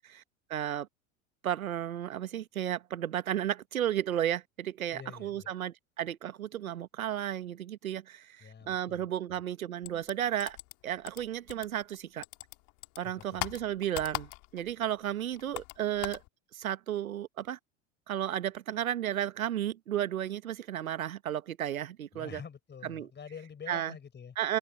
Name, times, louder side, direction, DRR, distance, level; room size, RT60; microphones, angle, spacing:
voice 1, 0.5-0.9 1.4-10.6 10.8-12.2 13.0-16.2 16.5-17.6 18.1-22.4 22.8-23.1 23.7-23.9 24.4-24.6, right 11 dB, 85° right, 1.4 m, -33 dB
voice 2, 4.9-5.6 8.4-9.1 13.0-13.4 22.1-24.4, left 7 dB, 25° left, 5.4 m, -47 dB
sound 1, 9.8-12.0 12.2-14.7 15.0-16.3, left 29 dB, 55° left, 2.3 m, -40 dB
open air
hypercardioid pair, 85°, 41 cm